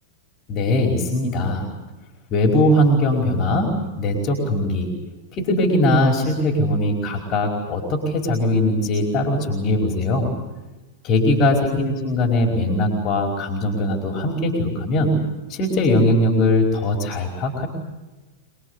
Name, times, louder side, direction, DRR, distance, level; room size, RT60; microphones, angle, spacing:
voice 1, 0.5-1.7 2.3-4.9 5.3-10.3 11.0-15.2 15.5-17.7, left 1 dB, 40° left, 1 dB, 5.0 m, -20 dB
26.0 x 22.5 x 8.3 m, 1.1 s
hypercardioid pair, 100°, 0 cm